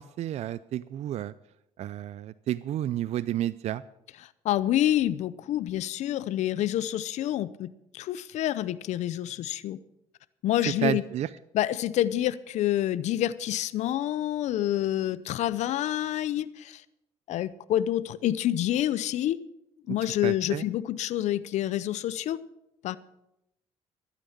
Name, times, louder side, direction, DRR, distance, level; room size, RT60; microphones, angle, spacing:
voice 1, 0.0-1.3 1.8-3.8 10.7-11.3 19.9-20.7, right 12 dB, 65° right, 17 dB, 0.5 m, -31 dB
voice 2, 4.4-9.8 10.4-11.0 11.5-16.8 17.3-19.4 19.9-22.4 22.8-23.0, left 12 dB, 70° left, 16 dB, 0.6 m, -27 dB
12.5 x 9.2 x 7.2 m, 0.85 s
cardioid pair, 85°, 12 cm